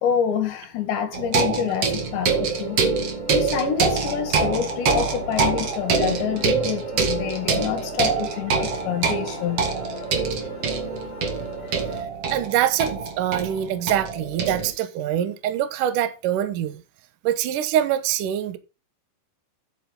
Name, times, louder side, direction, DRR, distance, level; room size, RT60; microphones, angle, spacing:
voice 1, 0.0-2.8 3.3-9.6, left 8 dB, 70° left, 3.9 m, -27 dB
sound 1, 1.1-14.7, right 5 dB, 55° right, 1.7 m, -25 dB
sound 2, 1.9-12.0, left 4 dB, 45° left, 5.3 m, -41 dB
voice 2, 12.3-16.8 17.2-18.6, right 11 dB, 85° right, 1.9 m, -24 dB
11.0 x 8.9 x 3.9 m
omnidirectional pair, 5.6 m